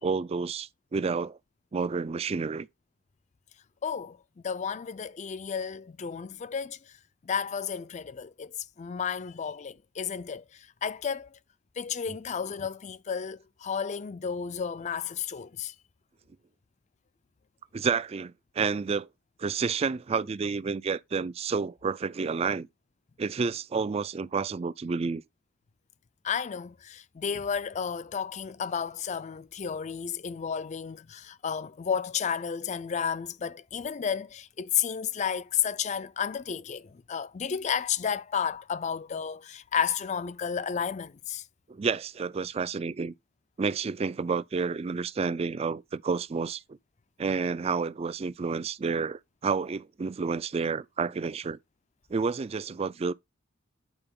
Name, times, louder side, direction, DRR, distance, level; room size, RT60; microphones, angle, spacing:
voice 1, 0.0-1.4 1.7-2.7 17.7-19.1 19.4-22.7 23.2-25.2 41.7-43.1 43.6-46.8 47.2-51.6 52.1-53.1, right 5 dB, 30° right, 0.3 m, -30 dB
voice 2, 3.8-6.8 7.2-11.4 11.8-15.7 26.2-41.4, left 7 dB, 35° left, 0.4 m, -32 dB
8.9 x 4.5 x 3.6 m
head